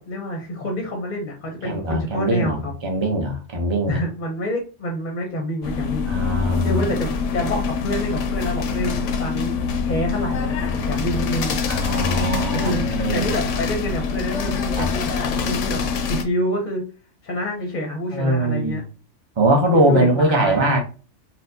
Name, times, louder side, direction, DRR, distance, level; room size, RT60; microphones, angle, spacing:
voice 1, 0.0-2.7 3.9-6.1 6.6-9.6 9.8-11.6 12.5-15.8 16.1-16.8 17.2-18.8 19.9-20.7, equal, 45° left, 0.7 m, -27 dB
voice 2, 1.6-4.0 6.1-6.8 11.7-13.3 14.8-14.9 18.1-18.8 19.4-20.8, right 1 dB, 30° right, 0.6 m, -21 dB
sound 1, 5.6-16.2, left 5 dB, 75° left, 0.9 m, -25 dB
4.2 x 2.2 x 2.7 m
omnidirectional pair, 1.3 m